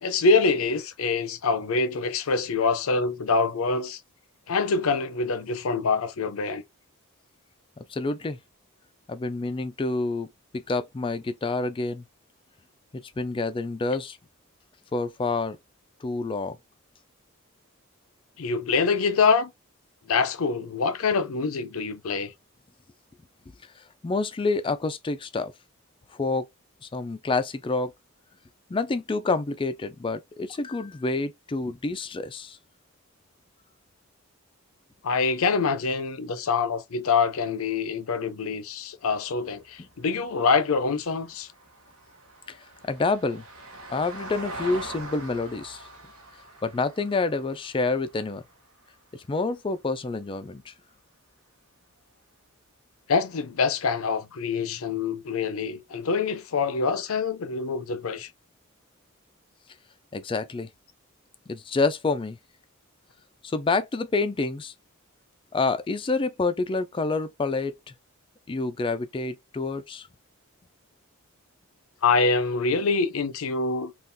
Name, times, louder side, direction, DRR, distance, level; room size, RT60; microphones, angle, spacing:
voice 1, 0.0-4.0 4.5-6.6 18.4-19.5 20.1-22.3 35.0-41.5 53.1-58.3 72.0-74.0, left 4 dB, 70° left, 0.6 m, -25 dB
voice 2, 7.9-8.4 9.1-12.0 12.9-14.2 14.9-15.6 16.0-16.6 23.8-25.5 26.1-26.5 26.8-27.9 28.7-32.6 42.5-42.6 42.9-43.4 43.9-45.8 46.6-48.4 49.1-50.7 60.1-60.7 61.5-62.4 63.4-64.7 65.5-67.9 68.5-70.1, left 3 dB, 25° left, 0.3 m, -28 dB
Vehicle, 39.2-49.7 52.0-52.1, right 2 dB, 75° right, 0.9 m, -44 dB
3.6 x 2.4 x 2.6 m
head